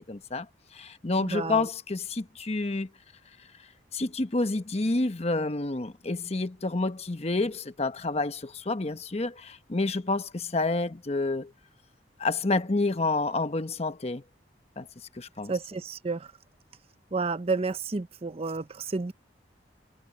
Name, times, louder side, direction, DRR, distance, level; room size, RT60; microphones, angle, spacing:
voice 1, 0.1-0.5 0.7-2.9 3.9-11.5 12.2-14.2 14.8-14.9 15.1-15.5, left 3 dB, 35° left, 1.0 m, -29 dB
voice 2, 1.2-1.6 15.5-16.3 17.1-19.1, right 4 dB, 35° right, 0.6 m, -31 dB
head